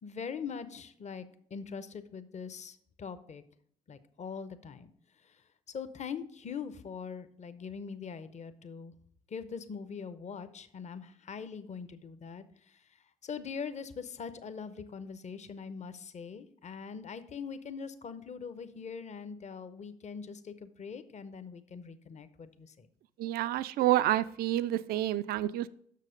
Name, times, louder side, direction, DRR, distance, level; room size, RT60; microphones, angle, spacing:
voice 1, 0.0-3.4 3.9-4.9 5.2-8.9 9.3-22.9, left 6 dB, 40° left, 12 dB, 0.7 m, -42 dB
voice 2, 23.2-25.7, right 14 dB, 60° right, 15 dB, 0.4 m, -28 dB
6.6 x 6.2 x 5.0 m, 0.64 s
hypercardioid pair, 45°, 18 cm